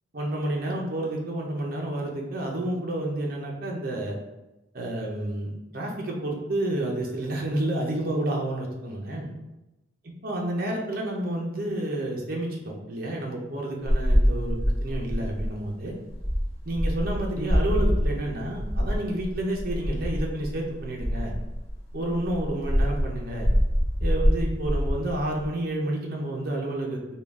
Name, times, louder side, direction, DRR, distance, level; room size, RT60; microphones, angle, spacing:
voice 1, 0.1-4.2 4.7-9.3 10.0-15.9 16.7-21.3 21.9-23.5 24.0-27.0, right 1 dB, 45° right, -1 dB, 0.5 m, -30 dB
sound 1, 13.8-21.8 22.1-25.5, equal, 15° left, 1.0 m, -25 dB
3.7 x 2.2 x 3.5 m, 0.99 s
head